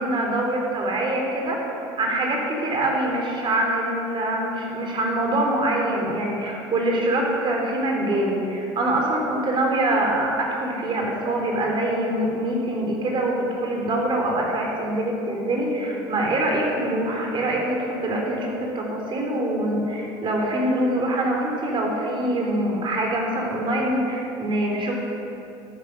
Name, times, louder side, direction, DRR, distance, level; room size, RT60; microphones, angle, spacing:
voice 1, 0.0-24.9, right 1 dB, 40° right, 0 dB, 3.8 m, -24 dB
13.5 x 9.2 x 6.4 m, 2.8 s
supercardioid pair, 85°, 12 cm